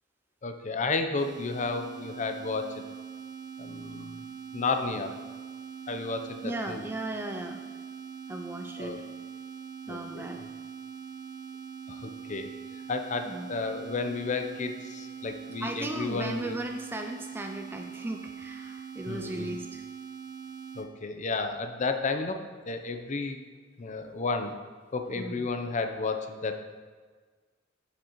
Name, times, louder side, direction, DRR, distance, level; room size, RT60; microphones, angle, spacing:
voice 1, 0.4-2.8 3.6-4.2 4.5-5.1 5.9-6.8 8.8-9.0 9.9-10.3 11.9-12.5 12.9-16.6 19.1-19.6 20.7-23.4 23.8-24.6 24.9-26.6, left 3 dB, 40° left, 7 dB, 0.6 m, -32 dB
sound 1, 1.2-20.9, right 7 dB, 60° right, 0.8 m, -43 dB
voice 2, 6.4-7.6 8.3-9.0 9.9-10.4 13.3-13.5 15.6-19.8 25.1-25.5, right 1 dB, 10° right, 3 dB, 0.3 m, -36 dB
8.4 x 7.8 x 3.0 m, 1.5 s
head